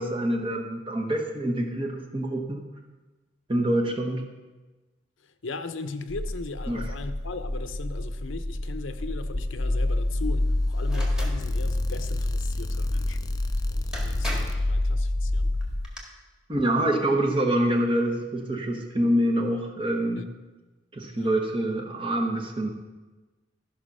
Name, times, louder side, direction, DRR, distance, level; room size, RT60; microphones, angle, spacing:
voice 1, 0.0-2.6 3.5-4.2 6.7-6.9 16.5-20.3 20.9-22.7, right 1 dB, 30° right, 2 dB, 1.1 m, -26 dB
voice 2, 5.2-15.5 20.2-20.3 21.1-21.3, left 3 dB, 90° left, 9 dB, 0.8 m, -38 dB
sound 1, 6.1-15.9, left 1 dB, 20° left, 0.4 m, -27 dB
sound 2, 10.9-11.4 13.4-13.5 13.9-14.7 15.6-16.0, equal, 5° right, 1.7 m, -37 dB
13.5 x 5.8 x 5.4 m, 1.2 s
head